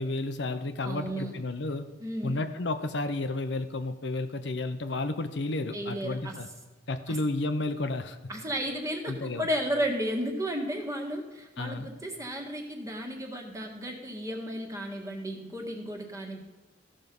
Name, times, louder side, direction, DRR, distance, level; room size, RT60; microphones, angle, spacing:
voice 1, 0.0-1.9 2.2-6.5 6.9-8.2 9.1-9.5 11.6-11.9, left 2 dB, 70° left, 8 dB, 0.8 m, -32 dB
voice 2, 0.8-1.3 2.0-2.5 5.7-6.4 7.1-7.2 8.3-16.4, equal, 15° right, 2 dB, 1.6 m, -33 dB
15.0 x 6.3 x 5.3 m, 1.2 s
head